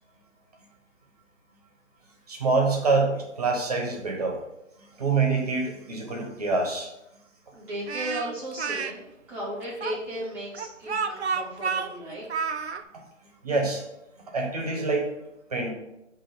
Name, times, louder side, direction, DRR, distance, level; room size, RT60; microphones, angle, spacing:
voice 1, 2.3-4.4 4.8-6.9 13.4-13.8 14.3-15.1 15.5-15.7, right 3 dB, 30° right, 1 dB, 1.1 m, -26 dB
voice 2, 7.5-12.2, equal, 5° right, -11 dB, 1.1 m, -35 dB
Speech, 7.9-8.9 9.8-12.8, right 5 dB, 60° right, 0.6 m, -30 dB
7.5 x 2.9 x 5.2 m, 0.87 s
figure-of-eight pair, 155°, 38 cm